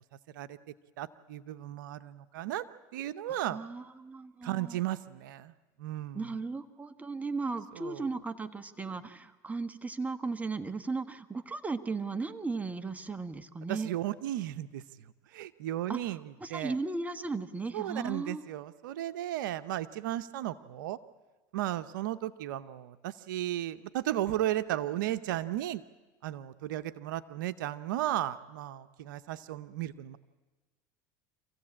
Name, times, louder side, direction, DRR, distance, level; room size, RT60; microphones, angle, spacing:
voice 1, 1.0-2.7 2.9-3.6 4.4-5.5 5.8-6.3 7.7-8.1 13.7-16.8 17.7-21.0 21.5-25.8 26.2-30.2, right 13 dB, 85° right, 13 dB, 0.8 m, -35 dB
voice 2, 3.3-4.8 6.1-13.9 15.9-18.4, right 3 dB, 15° right, 10 dB, 1.3 m, -36 dB
26.5 x 15.5 x 8.7 m, 1.2 s
supercardioid pair, 95°, 10 cm